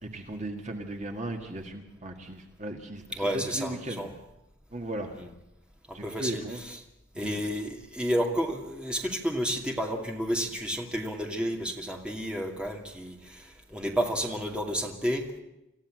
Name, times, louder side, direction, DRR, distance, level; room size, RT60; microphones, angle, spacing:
voice 1, 0.0-4.0 4.7-5.1 5.9-6.6 7.1-7.4, right 1 dB, 35° right, 4 dB, 2.0 m, -37 dB
voice 2, 3.1-4.1 5.1-5.3 5.9-6.8 7.2-15.3, equal, 5° right, 1 dB, 2.5 m, -31 dB
26.5 x 15.0 x 7.8 m, 0.91 s
head